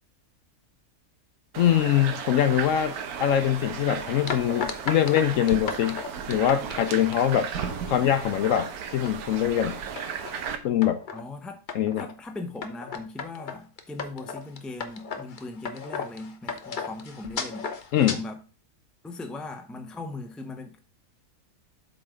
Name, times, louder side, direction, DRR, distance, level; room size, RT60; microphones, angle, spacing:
sound 1, 1.5-10.6, right 7 dB, 80° right, 1.4 m, -35 dB
voice 1, 1.6-2.9 3.2-6.0 6.3-7.5 7.9-9.7 10.6-11.0 11.7-12.1 17.9-18.2, left 10 dB, 70° left, 0.9 m, -23 dB
sound 2, 4.3-7.7 8.2-8.6 8.9-9.4 10.0-10.4 10.8-11.2 11.7-12.1 12.6-18.2, left 5 dB, 40° left, 0.8 m, -35 dB
voice 2, 11.1-11.6 12.0-17.7 18.0-18.4 19.0-20.8, left 2 dB, ahead, 0.6 m, -39 dB
7.8 x 4.0 x 5.0 m
omnidirectional pair, 1.6 m